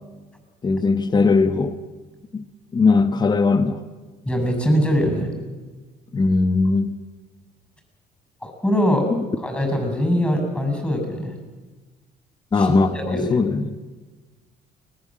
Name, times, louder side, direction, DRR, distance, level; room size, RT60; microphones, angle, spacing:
voice 1, 0.6-1.8 2.3-2.4 2.7-3.8 6.1-7.0 9.1-9.3 12.5-13.8, left 4 dB, 25° left, 11 dB, 1.1 m, -19 dB
voice 2, 4.3-5.3 8.4-9.1 9.4-11.3 12.6-12.7 12.9-13.4, equal, 5° left, 5 dB, 7.0 m, -22 dB
24.5 x 19.5 x 7.5 m, 1.3 s
cardioid pair, 110°, 17 cm